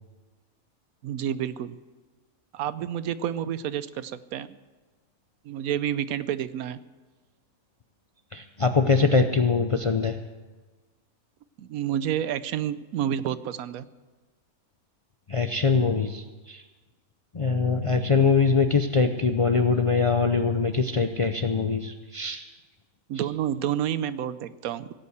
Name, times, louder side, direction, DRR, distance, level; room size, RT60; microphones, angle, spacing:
voice 1, 1.0-1.8 2.5-4.6 5.4-6.8 11.6-13.9 23.1-24.9, right 10 dB, 90° right, 15 dB, 1.1 m, -29 dB
voice 2, 8.3-10.2 15.3-16.6 17.3-22.4, left 4 dB, 45° left, 7 dB, 0.4 m, -23 dB
17.0 x 8.4 x 7.9 m, 1.3 s
omnidirectional pair, 1.5 m